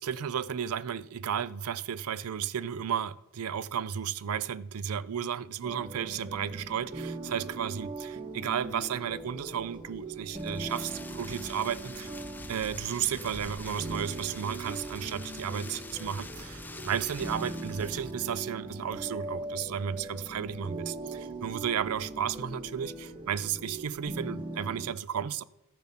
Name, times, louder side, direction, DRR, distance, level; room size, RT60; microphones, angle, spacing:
voice 1, 0.0-12.1 12.5-25.4, right 8 dB, 85° right, 0.4 m, -33 dB
sound 1, 5.6-24.9, right 2 dB, 20° right, 0.7 m, -40 dB
Rain, 10.3-18.1, left 2 dB, 10° left, 0.4 m, -45 dB
13.5 x 7.1 x 5.7 m
head